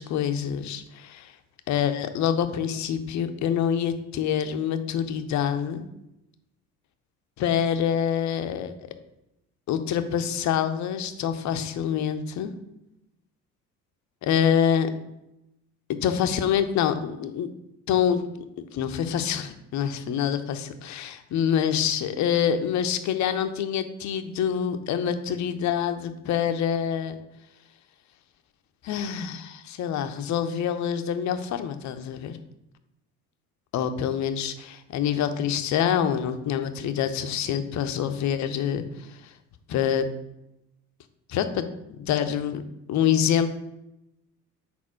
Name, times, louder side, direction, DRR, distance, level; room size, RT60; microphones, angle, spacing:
voice 1, 0.0-1.3 1.7-5.8 7.4-8.9 9.7-12.5 14.2-14.9 16.0-17.5 17.9-18.2 18.7-27.2 28.8-32.4 33.7-39.1 39.7-40.1 41.3-41.6 42.0-42.6 42.9-43.5, left 8 dB, 40° left, 9 dB, 0.6 m, -26 dB
4.3 x 4.2 x 5.6 m, 0.88 s
figure-of-eight pair, 55°, 46 cm